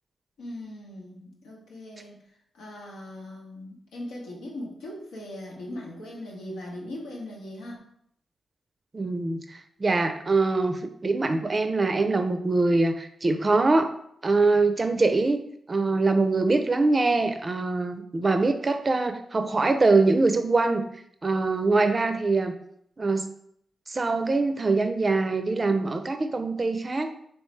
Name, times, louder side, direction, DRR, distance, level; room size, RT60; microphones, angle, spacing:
voice 1, 0.4-2.2 2.5-7.8, left 1 dB, 90° left, -3 dB, 0.9 m, -39 dB
voice 2, 8.9-13.9 14.2-15.4 15.7-20.8 21.2-22.6 23.0-23.3 23.9-27.1, right 3 dB, 40° right, 7 dB, 0.4 m, -23 dB
3.1 x 3.1 x 3.2 m, 0.70 s
supercardioid pair, 45°, 0 cm